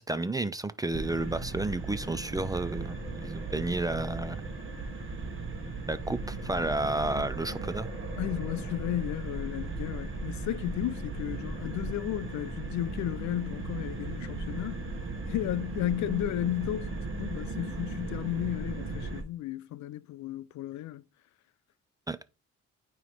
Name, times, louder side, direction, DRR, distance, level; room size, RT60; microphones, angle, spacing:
voice 1, 0.0-4.4 5.9-7.9 22.1-22.2, right 2 dB, 10° right, 0.4 m, -31 dB
sound 1, 0.9-19.2, right 3 dB, 40° right, 1.5 m, -37 dB
voice 2, 8.2-14.9 15.3-21.0, left 13 dB, 70° left, 0.4 m, -34 dB
9.2 x 3.1 x 3.2 m
cardioid pair, 90°, 30 cm